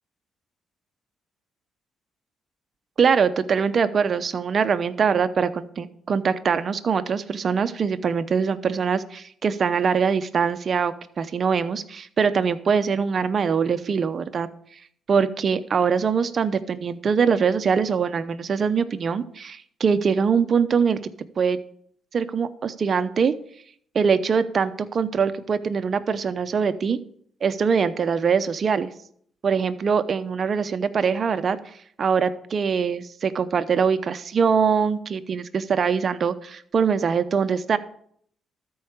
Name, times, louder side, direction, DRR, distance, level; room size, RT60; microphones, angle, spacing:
voice 1, 3.0-14.5 15.1-21.0 21.4-21.6 22.1-23.3 23.9-27.0 27.4-28.9 29.4-31.6 32.0-37.8, right 6 dB, 45° right, 11 dB, 0.8 m, -23 dB
13.5 x 4.8 x 6.6 m, 0.62 s
cardioid pair, 90°, 0 cm